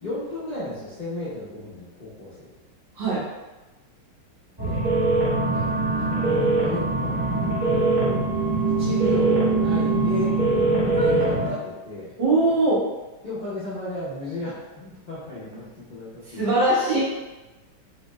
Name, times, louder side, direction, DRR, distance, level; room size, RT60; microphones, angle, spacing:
voice 1, 0.0-2.5 4.6-4.8 5.4-5.7 6.0-8.3 8.6-12.1 13.2-15.6 15.9-16.5, left 2 dB, 85° left, -11 dB, 0.4 m, -35 dB
sound 1, 4.6-11.5, right 2 dB, 15° right, 0.9 m, -22 dB
voice 2, 12.2-12.8 16.3-17.0, right 2 dB, 80° right, -8 dB, 1.9 m, -21 dB
4.0 x 2.2 x 3.0 m, 1.1 s
omnidirectional pair, 2.0 m